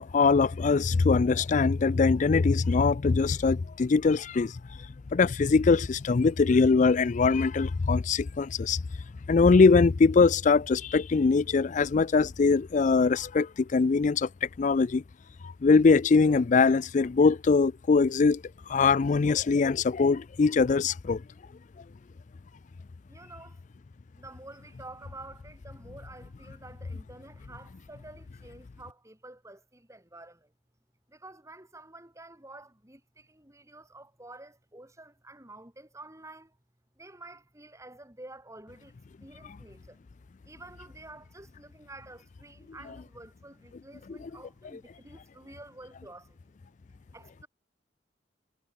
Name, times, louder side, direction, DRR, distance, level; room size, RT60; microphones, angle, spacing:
voice 1, 0.0-4.5 5.1-8.8 9.3-14.3 14.6-15.0 15.6-18.4 18.7-21.2, left 4 dB, 40° left, 0.4 m, -22 dB
voice 2, 23.1-23.6 24.2-30.5 31.1-36.6 37.0-39.0 39.2-40.0 40.4-46.4 47.1-47.5, right 2 dB, 15° right, 7.9 m, -49 dB
head